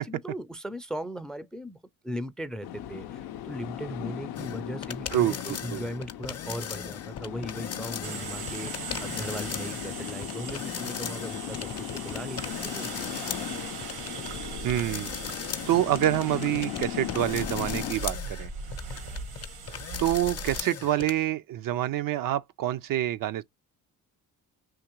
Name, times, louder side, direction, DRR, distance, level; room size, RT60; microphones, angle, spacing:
voice 1, 0.0-1.8 2.0-13.4, equal, ahead, 0.4 m, -38 dB
sound 1, 2.6-17.9, left 11 dB, 90° left, 0.5 m, -38 dB
sound 2, 4.4-21.1, left 7 dB, 40° left, 0.7 m, -38 dB
voice 2, 5.1-5.8 14.6-15.1 15.7-18.5 20.0-23.4, right 13 dB, 65° right, 0.5 m, -27 dB
sound 3, 8.0-20.6, right 4 dB, 85° right, 1.2 m, -39 dB
3.6 x 2.9 x 2.9 m
cardioid pair, 80°, 37 cm